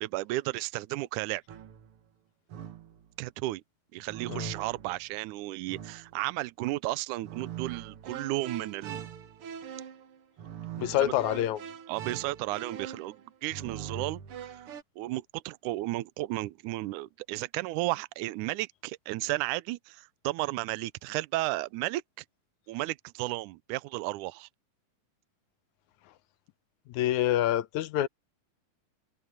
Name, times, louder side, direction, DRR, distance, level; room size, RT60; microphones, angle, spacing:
voice 1, 0.0-1.4 3.2-3.6 3.9-9.1 10.9-11.1 11.9-14.7 15.0-22.3 22.7-24.5, right 19 dB, 80° right, 2.0 m, -33 dB
sound 1, 1.5-2.0 2.5-3.0 4.1-5.1 5.7-6.2 7.2-14.8, right 9 dB, 55° right, 1.7 m, -42 dB
voice 2, 10.8-11.6 26.9-28.1, left 13 dB, 70° left, 1.9 m, -27 dB
omnidirectional pair, 3.9 m